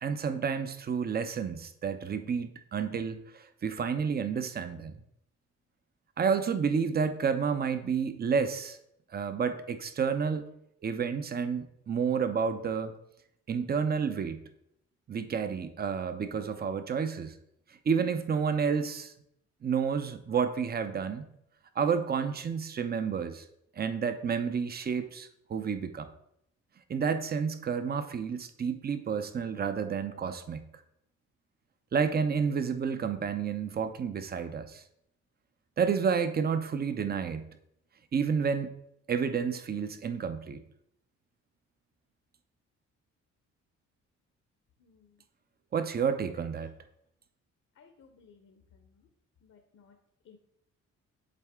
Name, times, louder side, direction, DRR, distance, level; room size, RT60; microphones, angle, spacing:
voice 1, 0.0-4.9 6.2-8.8 9.1-10.5 10.8-13.0 13.5-14.4 15.1-17.3 17.9-19.1 19.6-21.3 21.8-23.4 23.8-26.1 26.9-30.6 31.9-34.8 35.8-37.4 38.1-38.7 39.1-40.6 45.7-46.7, right 6 dB, 30° right, 10 dB, 0.6 m, -30 dB
voice 2, 47.8-48.5 49.5-49.9 50.3-50.4, left 6 dB, 60° left, 5 dB, 0.8 m, -57 dB
7.7 x 3.6 x 3.6 m, 0.76 s
cardioid pair, 90°, 30 cm